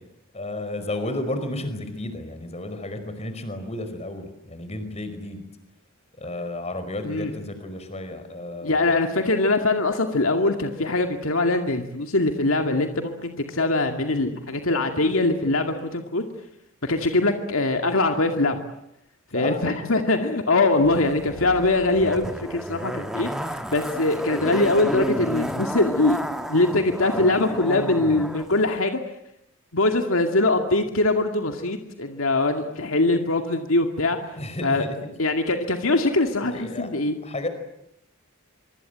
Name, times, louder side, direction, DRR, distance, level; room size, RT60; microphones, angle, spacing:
voice 1, 0.3-5.4 6.2-8.9 19.3-19.6 27.1-28.2 34.4-35.1 36.5-36.9 37.2-37.5, left 1 dB, 30° left, 9 dB, 5.0 m, -32 dB
voice 2, 8.6-16.2 16.8-18.6 19.3-23.3 23.7-26.2 26.5-29.0 29.7-34.2 34.6-34.8 35.2-37.2, left 2 dB, 70° left, 5 dB, 2.3 m, -22 dB
Zipper (clothing), 20.8-28.5 28.7-28.8, equal, 5° right, 1.6 m, -32 dB
25.0 x 25.0 x 9.2 m, 0.79 s
head